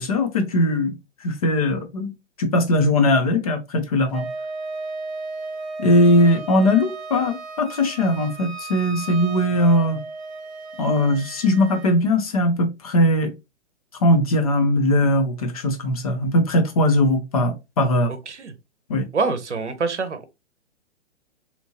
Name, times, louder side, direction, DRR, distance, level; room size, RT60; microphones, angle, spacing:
voice 1, 0.0-4.3 5.8-10.0 10.8-13.3 14.0-18.1 18.9-19.1, left 1 dB, 30° left, 0.5 m, -20 dB
Wind instrument woodwind instrument, 4.1-12.0, right 3 dB, 15° right, 0.9 m, -35 dB
voice 2, 19.1-20.3, right 4 dB, 75° right, 0.7 m, -25 dB
2.9 x 2.5 x 2.7 m
figure-of-eight pair, 120°, 36 cm